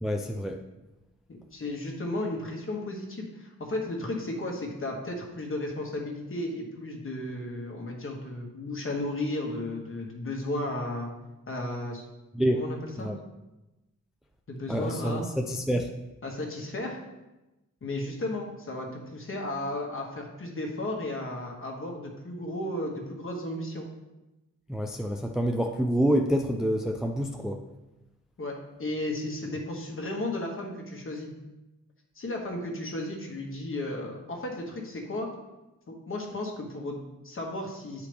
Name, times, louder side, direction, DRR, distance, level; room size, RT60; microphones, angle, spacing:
voice 1, 0.0-0.6 12.3-12.6 13.0-13.2 14.7-15.9 24.7-27.6, equal, ahead, 2 dB, 0.4 m, -27 dB
voice 2, 1.5-11.1 11.5-12.0 12.5-13.1 14.5-15.3 16.2-17.0 17.8-23.9 28.4-31.3 32.2-35.3 35.9-38.1, left 1 dB, 45° left, 1 dB, 1.4 m, -34 dB
9.1 x 4.9 x 3.4 m, 1.0 s
wide cardioid pair, 125°, 30 cm